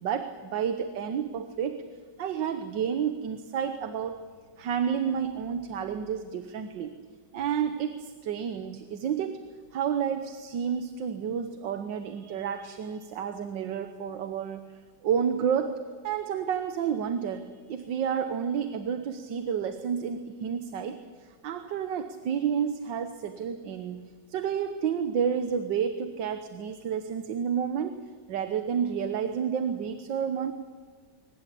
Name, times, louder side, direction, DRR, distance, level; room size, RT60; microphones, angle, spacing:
voice 1, 0.0-1.8 2.2-4.2 4.6-6.9 7.3-9.4 9.7-14.6 15.0-15.8 16.0-27.9 28.3-30.5, right 7 dB, 85° right, 9 dB, 1.7 m, -30 dB
22.5 x 19.5 x 8.5 m, 1.5 s
omnidirectional pair, 1.9 m